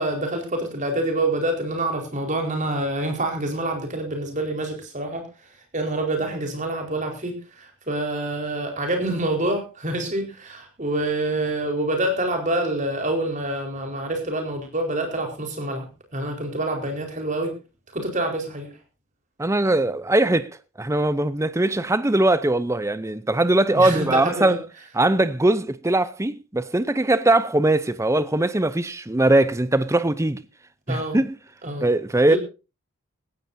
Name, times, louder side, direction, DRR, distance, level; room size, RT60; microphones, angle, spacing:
voice 1, 0.0-5.3 5.7-17.5 17.9-18.7 23.7-24.6 30.9-31.2 31.6-31.9 32.3-32.4, right 1 dB, 35° right, 4.5 m, -26 dB
voice 2, 19.4-20.5 20.8-24.6 24.9-30.4 30.9-31.4 31.8-32.4, right 2 dB, 15° right, 0.6 m, -21 dB
18.5 x 16.5 x 2.7 m
head